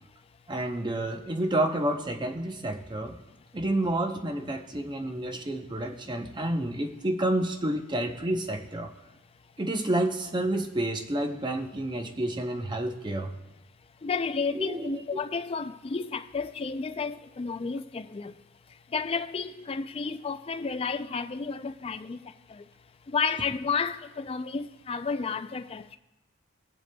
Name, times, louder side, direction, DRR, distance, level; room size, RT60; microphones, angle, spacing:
voice 1, 0.5-3.2 3.5-8.9 9.6-13.3 14.5-15.0, right 1 dB, 20° right, 0.6 m, -29 dB
voice 2, 14.0-18.3 18.9-22.2 23.1-26.0, left 5 dB, 25° left, 0.3 m, -31 dB
18.5 x 7.7 x 2.2 m
head